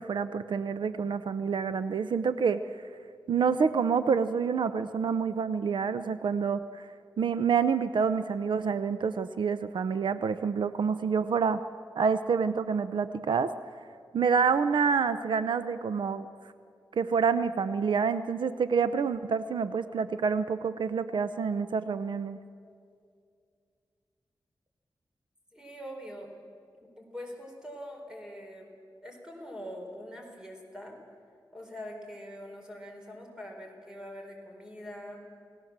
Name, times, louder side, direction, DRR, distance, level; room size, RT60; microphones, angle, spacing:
voice 1, 0.0-2.6 3.3-6.9 7.2-11.6 12.0-13.5 14.1-16.3 17.0-22.4, right 6 dB, 75° right, 12 dB, 0.6 m, -27 dB
voice 2, 25.5-26.3 26.8-28.7 29.0-31.0 31.5-35.3, equal, 10° right, 1 dB, 4.4 m, -43 dB
28.5 x 18.0 x 7.4 m, 2.3 s
wide cardioid pair, 125°, 8 cm